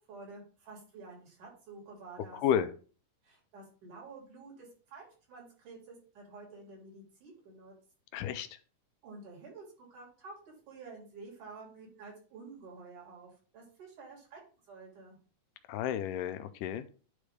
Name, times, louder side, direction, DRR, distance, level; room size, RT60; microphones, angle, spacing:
voice 1, 0.0-2.4 3.2-7.7 9.0-14.4 14.7-15.2, right 3 dB, 65° right, -2 dB, 4.7 m, -50 dB
voice 2, 8.1-8.5 15.7-16.9, left 9 dB, 85° left, 11 dB, 2.2 m, -31 dB
9.8 x 3.3 x 5.0 m, 0.38 s
omnidirectional pair, 3.8 m